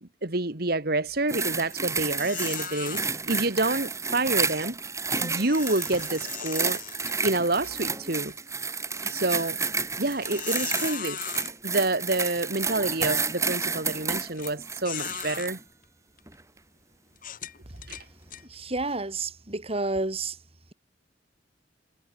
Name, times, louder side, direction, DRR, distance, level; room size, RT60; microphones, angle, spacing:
voice 1, 0.0-4.7 5.2-6.8 7.2-8.3 9.0-9.6 10.0-11.2 11.6-15.6 17.9-18.1, right 2 dB, 55° right, 2.4 m, -28 dB
sound 1, 1.1-1.4 1.7-1.8 2.2-3.0 5.4-7.7 8.2-8.3 8.9-9.0 10.0-11.5 12.4-12.5 13.0-13.3 14.4-14.5 14.8-15.5 16.2-16.3 17.2-18.4, left 9 dB, 50° left, 3.0 m, -38 dB
sound 2, 1.3-15.6 16.3-16.4, right 4 dB, 15° right, 2.0 m, -31 dB
voice 2, 18.5-20.4, right 2 dB, 35° right, 3.4 m, -30 dB
head